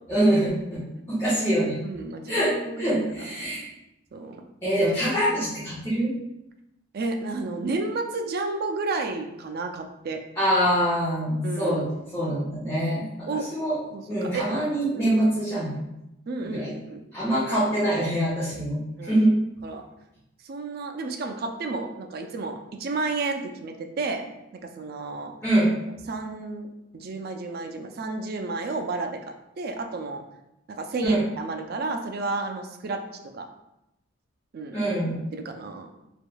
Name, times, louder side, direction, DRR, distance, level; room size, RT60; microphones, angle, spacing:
voice 1, 0.1-0.8 1.1-1.8 2.1-3.6 4.6-6.1 10.4-11.8 12.1-13.8 14.1-15.9 16.5-16.7 17.1-18.8 19.1-19.3 25.4-25.7 31.0-31.2 34.7-35.2, right 1 dB, 15° left, -12 dB, 1.2 m, -24 dB
voice 2, 1.8-2.5 2.9-3.5 4.1-4.4 6.9-10.2 11.4-11.9 13.3-13.5 13.9-14.5 14.9-15.2 16.3-17.1 19.0-19.2 19.6-19.9 20.4-24.3 24.6-25.3 26.1-29.3 29.6-30.2 30.7-33.0 33.3-33.5 34.5-34.8 35.3-35.9, right 3 dB, 50° right, 5 dB, 0.4 m, -31 dB
3.4 x 3.4 x 2.2 m, 0.88 s
head